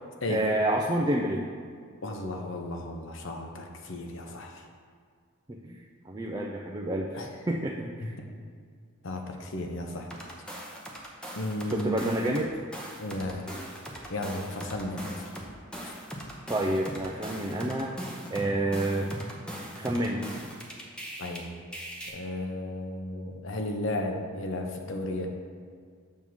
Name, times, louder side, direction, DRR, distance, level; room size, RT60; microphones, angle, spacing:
voice 1, 0.3-1.4 5.5-8.2 11.7-12.5 16.5-17.9 18.3-19.1 19.8-20.3, right 1 dB, 20° right, -1 dB, 0.4 m, -29 dB
voice 2, 2.0-4.7 7.1-7.3 8.0-8.1 9.0-10.1 11.3-12.0 13.0-13.5 14.1-15.3 21.2-21.5 22.1-25.3, left 1 dB, 60° left, 3 dB, 0.8 m, -34 dB
sound 1, 10.1-12.5 12.7-21.4 21.7-22.1, equal, 5° left, 0.8 m, -39 dB
7.5 x 3.6 x 6.2 m, 2.1 s
head